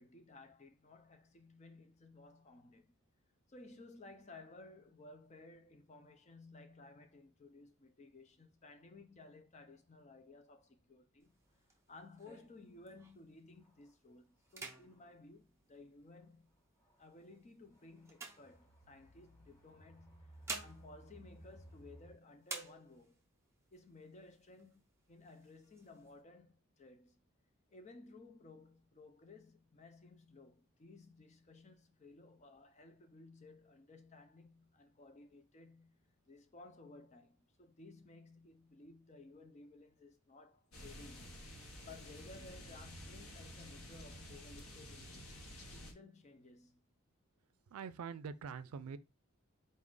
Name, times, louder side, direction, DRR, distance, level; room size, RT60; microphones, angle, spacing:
voice 1, 0.0-2.9 3.5-11.4 11.9-16.5 17.0-23.2 23.7-24.8 25.1-27.2 27.7-41.4 41.8-45.3 45.7-46.9, left 3 dB, 30° left, 0.5 m, -57 dB
sound 1, 11.2-13.4 13.9-14.1 14.4-16.4 17.0-19.2 20.1-22.1 22.4-23.3 23.7-23.8 24.1-24.8 25.2-26.1, right 3 dB, 15° right, 0.6 m, -50 dB
sound 2, 12.8-12.9 13.6-13.9 14.9-15.0 16.8-17.1 17.7-22.1, right 1 dB, 15° left, 0.9 m, -59 dB
sound 3, 40.7-45.9, equal, 85° left, 1.1 m, -51 dB
voice 2, 47.7-49.0, right 6 dB, 90° right, 0.4 m, -44 dB
4.1 x 2.5 x 3.6 m
head